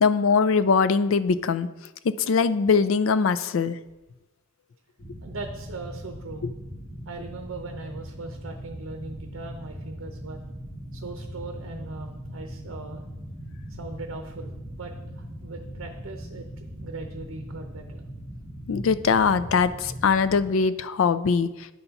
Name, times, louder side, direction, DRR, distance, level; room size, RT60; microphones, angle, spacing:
voice 1, 0.0-1.7 2.0-3.8 6.4-6.5 18.7-21.5, left 5 dB, 70° left, 14 dB, 0.4 m, -22 dB
sound 1, 5.0-20.5, equal, 30° left, 1.7 m, -40 dB
voice 2, 5.2-6.5 7.0-10.4 10.9-13.0 13.7-18.0, right 3 dB, 70° right, 4 dB, 0.7 m, -40 dB
10.0 x 4.1 x 5.7 m, 1.0 s
head